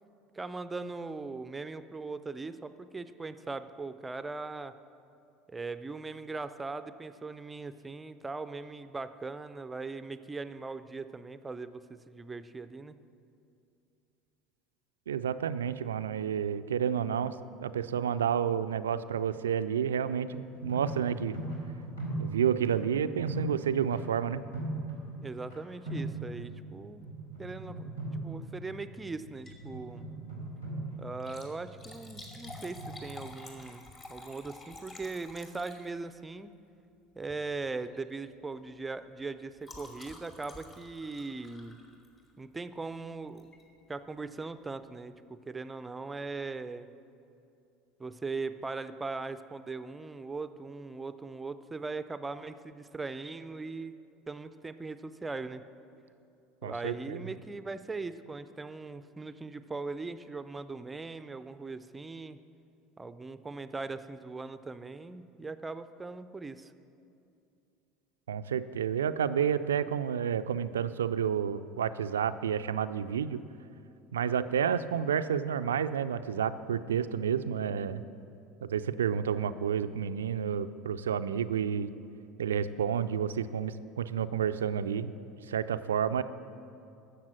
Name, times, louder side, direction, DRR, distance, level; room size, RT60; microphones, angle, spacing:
voice 1, 0.3-4.7 5.5-13.0 25.2-27.0 27.4-30.1 31.0-36.5 37.2-41.8 42.4-43.5 43.9-46.9 48.0-54.0 54.3-55.6 56.6-62.4 63.0-66.7, right 3 dB, 15° right, 12 dB, 0.5 m, -40 dB
voice 2, 15.1-17.3 17.6-21.4 22.2-24.4 56.6-57.2 68.3-73.4 74.1-78.0 78.6-81.9 82.4-85.1 85.5-86.2, right 8 dB, 70° right, 12 dB, 0.4 m, -30 dB
sound 1, 20.5-25.6 25.9-26.7 27.0-33.3, right 2 dB, 80° left, 3.0 m, -40 dB
Liquid, 29.3-29.7 30.1-30.2 31.1-36.2 37.2-37.5 37.8-38.1 38.3-42.4 43.4-43.6 44.2-44.3 44.4-44.5, left 2 dB, 30° left, 2.4 m, -50 dB
13.5 x 7.4 x 7.6 m, 2.6 s
figure-of-eight pair, 70°, 0 cm